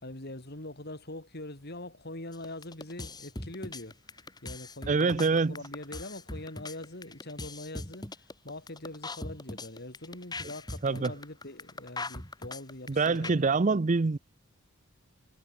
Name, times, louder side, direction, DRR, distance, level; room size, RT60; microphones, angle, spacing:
voice 1, 0.0-13.5, left 1 dB, 50° left, 4.0 m, -43 dB
sound 1, 2.3-13.3, left 2 dB, 20° left, 3.3 m, -40 dB
voice 2, 4.9-5.6 10.8-11.1 12.9-14.2, right 4 dB, 35° right, 0.5 m, -25 dB
head